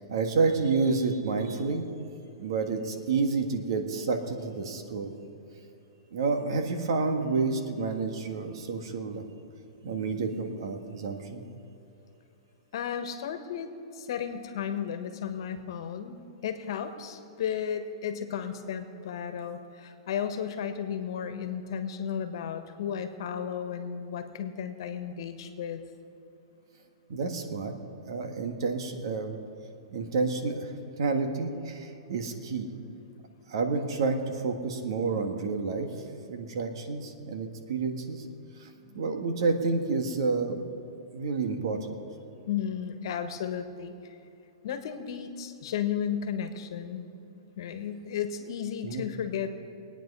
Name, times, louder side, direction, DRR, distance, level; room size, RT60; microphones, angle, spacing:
voice 1, 0.0-1.8 2.4-5.1 6.1-9.2 9.8-11.4 27.1-27.7 28.0-29.4 29.9-32.7 33.5-35.9 36.3-38.2 38.6-38.7 38.9-40.6 41.1-41.9 48.8-49.0, right 4 dB, 70° right, 5 dB, 1.7 m, -29 dB
voice 2, 12.7-25.8 38.8-39.1 42.5-44.2 44.6-47.0 47.6-49.5, left 8 dB, 65° left, 8 dB, 1.4 m, -34 dB
22.5 x 9.2 x 5.5 m, 2.8 s
hypercardioid pair, 145°, 3 cm